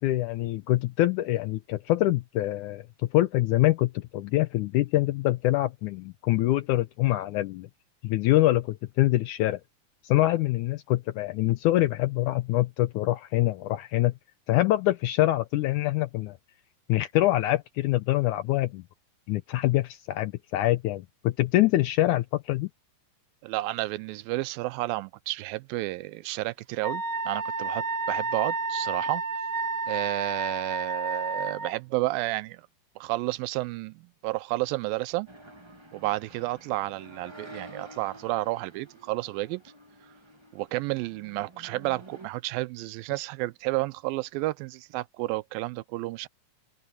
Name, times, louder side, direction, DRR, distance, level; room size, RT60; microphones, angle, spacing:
voice 1, 0.0-2.8 3.1-7.7 8.0-9.6 10.0-14.1 14.5-16.4 16.9-18.8 19.3-22.7, left 16 dB, 80° left, 1.8 m, -25 dB
voice 2, 23.4-29.2 29.9-32.6 33.0-35.3 35.9-39.6 40.5-46.3, right 19 dB, 85° right, 2.3 m, -31 dB
Wind instrument woodwind instrument, 26.8-31.7, right 3 dB, 50° right, 2.1 m, -31 dB
sound 1, 35.3-42.3, right 1 dB, 35° right, 0.4 m, -49 dB
open air
omnidirectional pair, 4.1 m